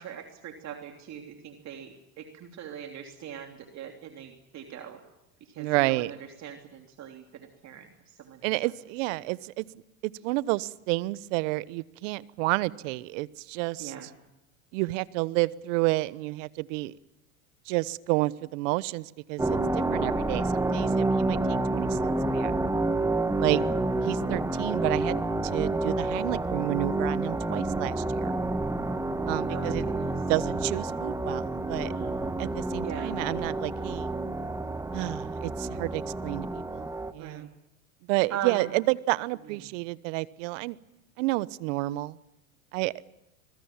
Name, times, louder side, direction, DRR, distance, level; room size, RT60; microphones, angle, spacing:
voice 1, 0.0-5.0 5.4-8.4 13.8-14.1 23.5-23.7 29.5-30.1 31.9-32.5 32.8-33.2 37.2-37.5 38.3-38.7, right 9 dB, 40° right, 4 dB, 3.1 m, -41 dB
voice 2, 5.6-6.1 8.4-9.6 10.0-13.9 14.7-16.9 17.7-22.5 23.4-23.6 24.0-28.3 29.3-29.9 30.3-31.9 32.4-34.1 34.9-36.9 37.1-37.5 38.1-40.8 41.2-42.2 42.7-43.0, right 21 dB, 60° right, 19 dB, 1.1 m, -30 dB
sound 1, 19.4-37.1, right 2 dB, 5° right, 1.6 m, -29 dB
25.0 x 21.5 x 7.4 m, 0.91 s
hypercardioid pair, 95°, 42 cm